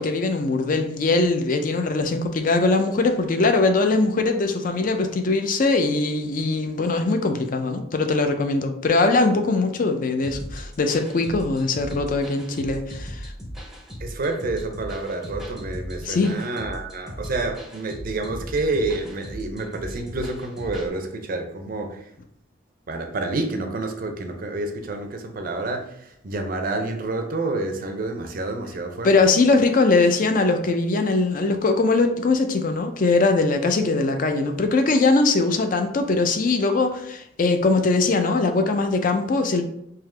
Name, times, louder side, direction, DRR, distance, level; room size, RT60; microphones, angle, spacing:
voice 1, 0.0-13.3 16.0-16.4 29.0-39.6, left 3 dB, 40° left, 6 dB, 0.4 m, -21 dB
sound 1, 10.2-20.9, equal, ahead, 0.6 m, -38 dB
voice 2, 14.0-22.1 22.9-29.1, right 2 dB, 45° right, 5 dB, 0.5 m, -28 dB
3.7 x 2.8 x 3.2 m, 0.76 s
head